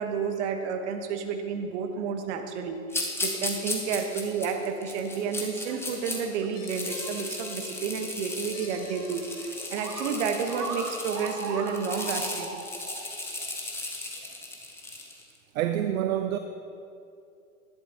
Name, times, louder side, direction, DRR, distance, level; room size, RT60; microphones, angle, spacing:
voice 1, 0.0-12.6, right 6 dB, 50° right, 6 dB, 1.1 m, -31 dB
sound 1, 2.9-6.2 6.5-15.2, left 2 dB, 5° left, 0.9 m, -36 dB
sound 2, 5.0-12.0, left 4 dB, 35° left, 1.5 m, -50 dB
sound 3, 9.4-9.5 9.7-13.0 13.4-13.5 14.2-14.3, right 3 dB, 90° right, 1.6 m, -37 dB
voice 2, 15.5-16.4, right 11 dB, 65° right, 8 dB, 0.6 m, -27 dB
11.0 x 10.5 x 2.8 m, 2.6 s
hypercardioid pair, 115°, 44 cm